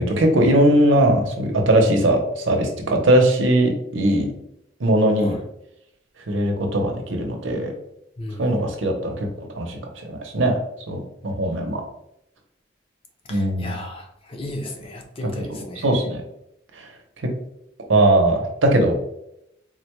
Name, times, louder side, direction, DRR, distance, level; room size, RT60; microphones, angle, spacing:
voice 1, 0.0-4.3 4.8-5.4 6.3-7.7 8.4-9.3 9.6-10.5 10.9-11.8 13.3-13.8 15.5-16.2 16.7-16.9 17.9-18.9, right 1 dB, 85° right, 2 dB, 0.8 m, -20 dB
voice 2, 8.2-8.6 13.3-15.9, left 1 dB, 30° left, 2 dB, 0.5 m, -35 dB
3.9 x 2.2 x 3.0 m, 0.79 s
head